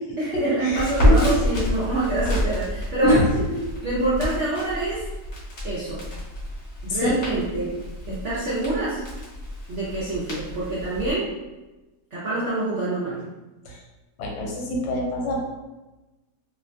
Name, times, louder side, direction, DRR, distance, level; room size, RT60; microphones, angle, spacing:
voice 1, 0.2-3.2 3.8-5.0 5.6-6.0 6.8-7.8 8.1-9.0 9.7-11.3 12.1-13.2, right 2 dB, 65° right, -9 dB, 0.7 m, -26 dB
Crackle, 0.7-11.1, left 1 dB, 50° left, 1.1 m, -28 dB
voice 2, 14.2-15.4, left 1 dB, 80° left, -1 dB, 1.2 m, -25 dB
2.9 x 2.2 x 2.5 m, 1.1 s
omnidirectional pair, 1.9 m